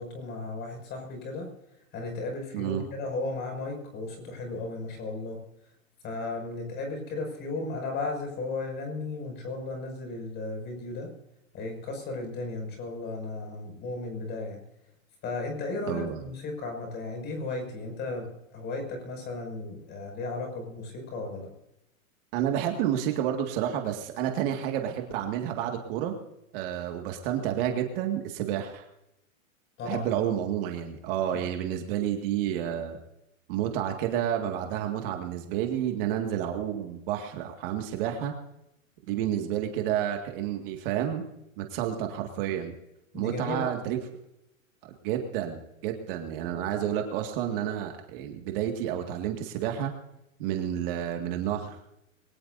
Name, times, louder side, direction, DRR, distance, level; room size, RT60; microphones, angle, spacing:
voice 1, 0.0-1.5 1.9-5.4 6.0-11.1 11.5-14.6 15.2-21.5 29.8-30.1 31.3-31.4 43.1-43.7, left 3 dB, 25° left, 3 dB, 6.1 m, -35 dB
voice 2, 2.5-2.8 15.9-16.2 22.3-26.1 26.5-28.8 29.9-33.0 33.5-38.3 39.1-41.2 41.6-42.7 43.1-44.0 45.0-49.9 50.4-51.8, right 10 dB, 40° right, 3 dB, 2.0 m, -30 dB
22.5 x 19.0 x 2.7 m, 0.85 s
hypercardioid pair, 155°, 41 cm